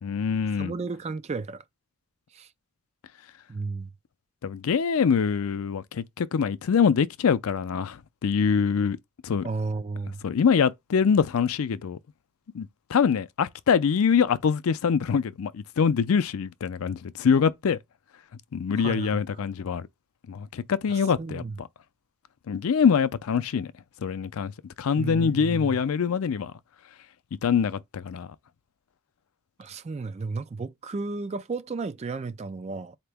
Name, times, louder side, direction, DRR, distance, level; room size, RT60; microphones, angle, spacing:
voice 1, 0.0-0.7 4.4-9.0 9.2-9.5 10.2-12.0 12.5-17.8 18.5-19.9 20.3-21.7 22.5-23.7 24.0-24.5 24.8-26.5 27.4-28.3, left 6 dB, 70° left, 0.4 m, -24 dB
voice 2, 0.6-1.6 2.3-2.5 3.5-3.9 9.4-10.2 18.8-19.2 20.9-21.5 25.0-25.8 29.6-33.0, right 4 dB, 30° right, 0.3 m, -33 dB
4.3 x 2.9 x 3.4 m
head